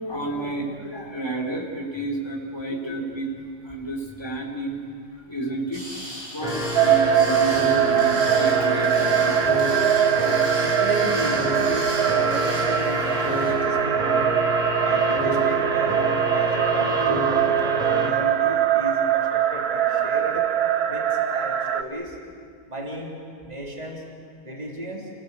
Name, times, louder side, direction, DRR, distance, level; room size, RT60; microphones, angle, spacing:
voice 1, 0.0-4.8 5.2-5.8 6.1-10.6, right 2 dB, 15° left, -2 dB, 3.2 m, -31 dB
sound 1, 5.7-13.5, equal, 85° right, 7.2 m, -37 dB
sound 2, 6.4-18.1, equal, 5° right, 3.3 m, -28 dB
sound 3, 6.8-21.8, right 9 dB, 55° right, 0.9 m, -22 dB
voice 2, 10.6-14.3 14.8-20.4 20.9-22.2 22.7-23.1 23.4-24.0 24.4-25.1, equal, 30° right, -2 dB, 3.4 m, -33 dB
30.0 x 17.5 x 8.2 m, 2.2 s
omnidirectional pair, 1.5 m